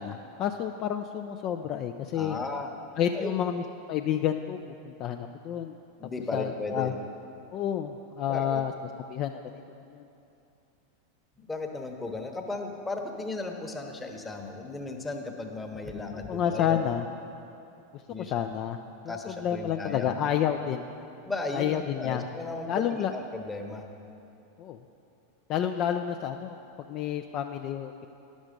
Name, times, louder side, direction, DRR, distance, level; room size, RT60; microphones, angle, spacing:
voice 1, 0.0-2.4 3.0-4.6 4.8-5.8 6.3-6.9 7.5-8.7 9.1-9.4 9.9-10.1 16.3-17.1 17.9-18.8 19.0-20.8 21.5-22.2 22.7-23.1 24.6-24.8 25.5-26.6 26.9-28.1, left 9 dB, 45° left, 6 dB, 0.3 m, -30 dB
voice 2, 2.1-2.7 3.1-3.4 6.0-6.9 8.3-8.6 11.4-16.9 18.1-18.5 19.1-20.1 21.2-23.9, left 2 dB, 15° left, 3 dB, 1.0 m, -35 dB
10.5 x 6.2 x 5.2 m, 2.7 s
hypercardioid pair, 90°, 0 cm